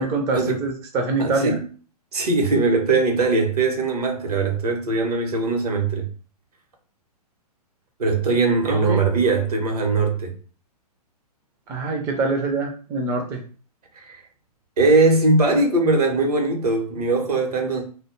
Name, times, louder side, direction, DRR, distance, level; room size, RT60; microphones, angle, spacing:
voice 1, 0.0-1.6 8.6-9.0 11.7-13.4, right 3 dB, 15° right, 0.4 m, -25 dB
voice 2, 1.2-1.6 2.1-6.1 8.0-10.3 14.0-14.2 14.8-17.8, right 3 dB, 70° right, 0.8 m, -20 dB
2.1 x 2.0 x 3.0 m
figure-of-eight pair, 120°, 20 cm